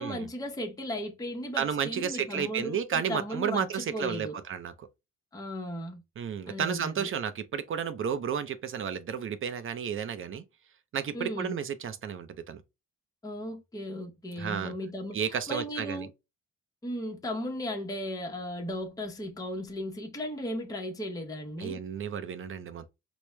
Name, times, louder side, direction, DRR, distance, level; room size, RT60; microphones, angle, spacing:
voice 1, 0.0-4.3 5.3-6.0 6.5-7.1 11.1-11.6 13.2-16.1 16.8-21.8, equal, 10° left, 0.8 m, -36 dB
voice 2, 1.6-4.9 6.2-10.4 10.9-12.6 14.4-14.7 15.1-16.1 21.6-22.9, right 7 dB, 45° right, 0.5 m, -32 dB
4.5 x 2.1 x 3.2 m
cardioid pair, 90°, 30 cm